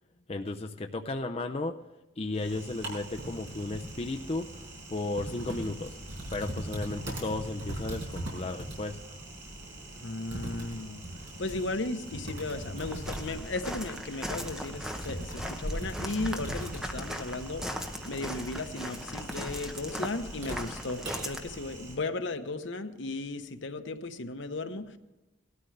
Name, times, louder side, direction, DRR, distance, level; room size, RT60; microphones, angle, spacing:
voice 1, 0.3-1.8 2.2-4.6 4.9-6.0 6.3-9.0, left 2 dB, 30° left, 4 dB, 0.5 m, -34 dB
Typing, 2.3-21.9, right 1 dB, 65° right, 5.1 m, -41 dB
voice 2, 10.0-25.0, left 2 dB, 70° left, 8 dB, 0.9 m, -36 dB
Walk footsteps, 12.8-21.4, equal, 5° right, 0.8 m, -38 dB
18.0 x 13.0 x 3.3 m, 1.0 s
head